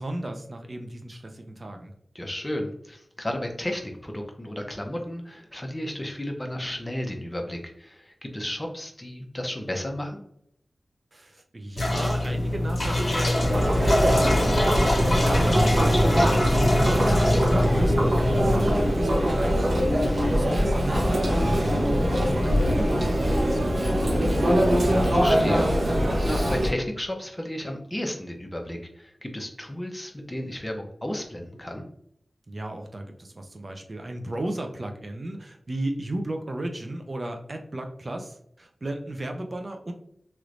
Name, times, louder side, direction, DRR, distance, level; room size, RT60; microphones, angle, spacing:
voice 1, 0.0-1.9 11.1-14.3 14.7-19.8 20.3-24.8 32.5-39.9, right 1 dB, 45° right, 4 dB, 0.6 m, -34 dB
voice 2, 2.1-10.2 20.0-20.4 25.1-31.8, left 1 dB, 20° left, 2 dB, 0.7 m, -33 dB
sound 1, 11.8-18.7, left 1 dB, 55° left, 1.4 m, -24 dB
Chatter, 13.4-26.7, equal, 70° right, 0.8 m, -22 dB
3.1 x 3.0 x 2.5 m, 0.70 s
wide cardioid pair, 55°, 0 cm